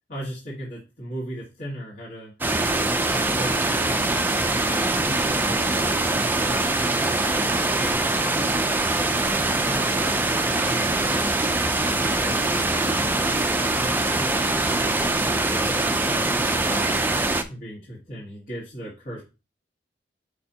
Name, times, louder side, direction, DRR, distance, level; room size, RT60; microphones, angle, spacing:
voice 1, 0.1-2.3 2.8-5.6 6.1-9.1 9.7-11.2 12.0-13.2 13.8-17.0 17.5-19.2, equal, 50° left, -5 dB, 1.9 m, -38 dB
sound 1, 2.4-17.4, right 2 dB, 10° right, 0.5 m, -23 dB
6.5 x 5.1 x 2.9 m, 0.29 s
head